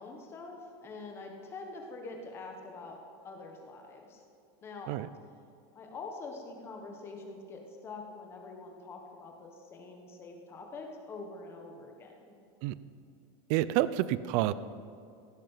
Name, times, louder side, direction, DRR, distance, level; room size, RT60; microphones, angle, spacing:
voice 1, 0.0-4.2 4.6-4.9 5.7-12.2, left 3 dB, 20° left, 2 dB, 1.3 m, -45 dB
voice 2, 13.5-14.5, right 14 dB, 40° right, 16 dB, 0.5 m, -28 dB
16.5 x 10.5 x 5.7 m, 2.5 s
supercardioid pair, 180°, 13 cm